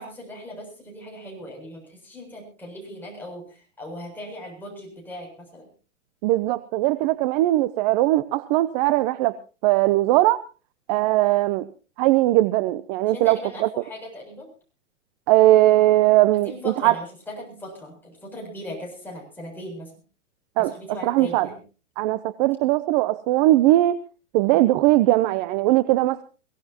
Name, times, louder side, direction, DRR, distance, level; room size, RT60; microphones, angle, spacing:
voice 1, 0.0-5.7 13.1-14.5 16.3-19.9 20.6-21.6, left 1 dB, 5° left, -2 dB, 7.4 m, -38 dB
voice 2, 6.2-9.4 9.6-10.4 10.9-11.7 12.0-13.7 15.3-16.9 20.6-20.7 21.0-21.5 22.0-24.0 24.3-26.2, right 16 dB, 35° right, 15 dB, 0.7 m, -19 dB
23.0 x 17.0 x 2.9 m, 0.34 s
hypercardioid pair, 140°, 38 cm